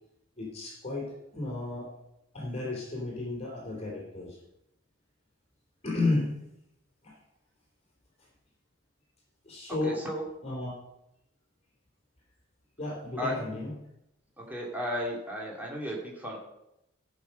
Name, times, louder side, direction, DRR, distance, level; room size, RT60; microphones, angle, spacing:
voice 1, 0.4-1.9 2.3-4.4 5.8-6.3 7.0-7.1 9.4-10.0 10.4-10.7 12.8-13.7, left 2 dB, 30° left, -2 dB, 2.9 m, -33 dB
voice 2, 9.8-10.2 13.2-13.4 14.4-16.4, equal, 10° right, -4 dB, 2.5 m, -34 dB
14.5 x 6.3 x 5.3 m, 0.85 s
head